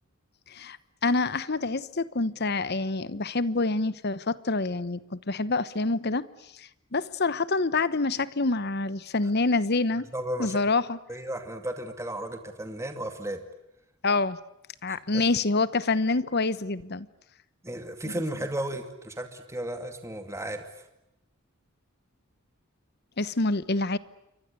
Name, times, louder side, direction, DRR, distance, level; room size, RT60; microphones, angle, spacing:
voice 1, 1.0-6.3 6.5-10.1 10.4-11.0 14.0-14.4 14.8-17.1 23.2-24.0, left 3 dB, 50° left, 1.0 m, -27 dB
voice 2, 10.1-10.6 11.1-13.4 14.9-15.2 17.6-20.6, right 1 dB, 15° right, 2.3 m, -34 dB
29.0 x 24.0 x 8.4 m
head